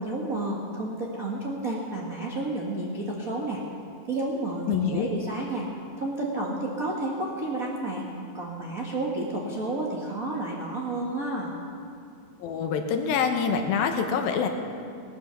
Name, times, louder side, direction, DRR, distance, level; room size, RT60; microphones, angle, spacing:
voice 1, 0.0-3.6 4.1-5.7 6.0-8.1 8.3-11.6, right 2 dB, 60° right, -3 dB, 0.9 m, -31 dB
voice 2, 4.7-5.1 12.4-14.5, left 6 dB, 80° left, 5 dB, 2.8 m, -25 dB
18.5 x 9.9 x 6.9 m, 2.4 s
omnidirectional pair, 4.2 m